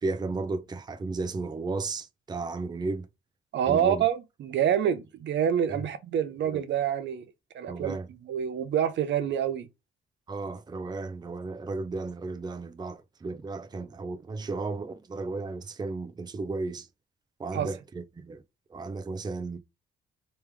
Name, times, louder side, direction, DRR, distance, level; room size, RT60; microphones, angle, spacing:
voice 1, 0.0-3.1 3.7-4.0 5.7-5.8 6.4-6.6 7.7-8.1 10.3-16.9 17.4-18.4 18.7-19.6, right 3 dB, 20° right, 0.5 m, -34 dB
voice 2, 3.5-7.2 7.5-7.9 8.2-9.7 17.5-17.7, right 9 dB, 65° right, 0.7 m, -27 dB
3.4 x 3.1 x 3.2 m
cardioid pair, 90°, 20 cm